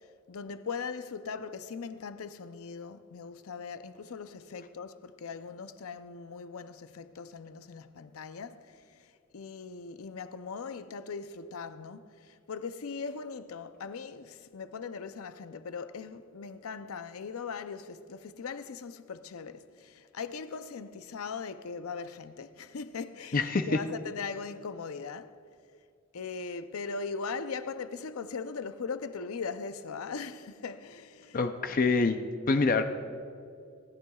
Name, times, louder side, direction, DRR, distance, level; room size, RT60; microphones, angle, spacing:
voice 1, 0.3-8.7 9.3-25.3 26.1-31.4, left 5 dB, 85° left, 0.6 m, -40 dB
voice 2, 23.3-23.7 31.3-32.2 32.5-32.8, left 4 dB, 40° left, 0.5 m, -25 dB
26.5 x 11.5 x 2.4 m
head